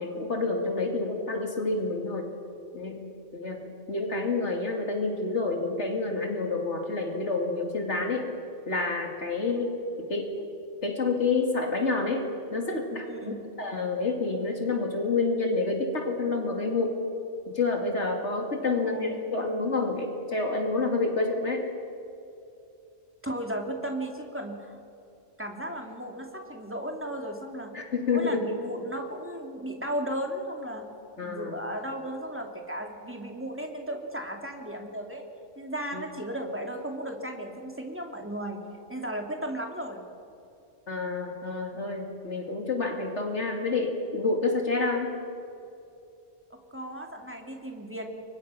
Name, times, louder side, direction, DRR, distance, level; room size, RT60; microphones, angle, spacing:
voice 1, 0.0-2.3 2.7-3.1 3.3-8.3 8.7-10.5 10.8-17.0 17.5-21.7 27.7-28.5 31.2-31.6 35.9-36.0 40.9-45.1, left 3 dB, 75° left, 2 dB, 2.8 m, -28 dB
voice 2, 13.0-13.4 18.6-19.2 23.2-24.8 25.4-27.7 28.1-30.9 31.2-35.2 35.6-38.6 38.9-40.0 41.7-41.8 46.5-48.1, right 1 dB, 10° right, 2 dB, 3.0 m, -35 dB
29.5 x 24.5 x 5.9 m, 2.6 s
omnidirectional pair, 1.2 m